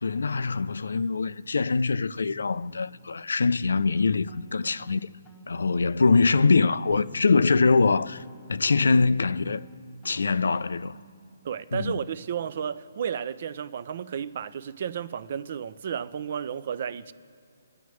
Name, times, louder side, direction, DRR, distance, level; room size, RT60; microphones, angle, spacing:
voice 1, 0.0-5.1 5.5-9.6 10.0-11.0 11.7-12.0, left 4 dB, 90° left, 0.3 m, -23 dB
sound 1, 3.8-11.2, left 2 dB, 10° left, 0.8 m, -52 dB
voice 2, 11.4-17.1, right 8 dB, 45° right, 0.4 m, -32 dB
22.0 x 9.4 x 3.1 m
hypercardioid pair, 160°, 0 cm